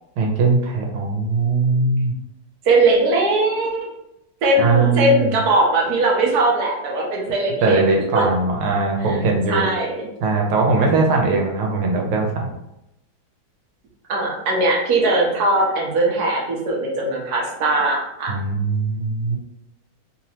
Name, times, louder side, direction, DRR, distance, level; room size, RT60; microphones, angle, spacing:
voice 1, 0.2-2.2 4.6-5.3 7.6-9.7 10.2-12.5 18.3-19.4, right 3 dB, 90° right, 1 dB, 1.5 m, -20 dB
voice 2, 2.6-3.7 4.4-7.8 8.1-8.2 9.1-9.2 9.5-10.1 10.8-11.0 14.1-18.3, right 2 dB, 65° right, -2 dB, 1.0 m, -20 dB
3.5 x 2.9 x 2.8 m, 0.86 s
omnidirectional pair, 2.3 m